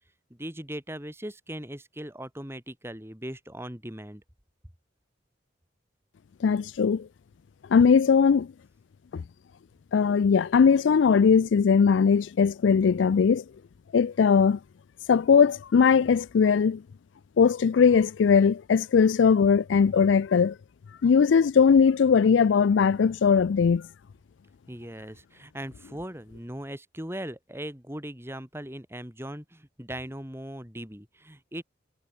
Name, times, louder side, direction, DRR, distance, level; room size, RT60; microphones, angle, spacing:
voice 1, 0.3-4.2 24.7-31.6, right 1 dB, 15° right, 4.1 m, -39 dB
voice 2, 6.4-7.1 7.7-8.5 9.1-9.2 9.9-13.4 13.9-14.6 15.1-16.8 17.4-20.6 21.0-23.9, left 6 dB, 80° left, 0.4 m, -20 dB
head